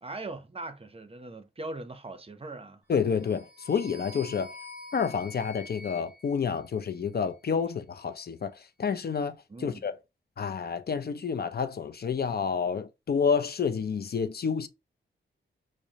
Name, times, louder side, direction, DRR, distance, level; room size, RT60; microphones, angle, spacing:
voice 1, 0.0-2.8 9.5-9.8, right 2 dB, 30° right, 0.6 m, -40 dB
voice 2, 2.9-4.6 4.9-10.0 10.4-14.7, left 6 dB, 50° left, 0.4 m, -29 dB
sound 1, 3.0-7.3, left 3 dB, 5° right, 1.8 m, -47 dB
6.0 x 2.0 x 2.7 m
wide cardioid pair, 80°, 21 cm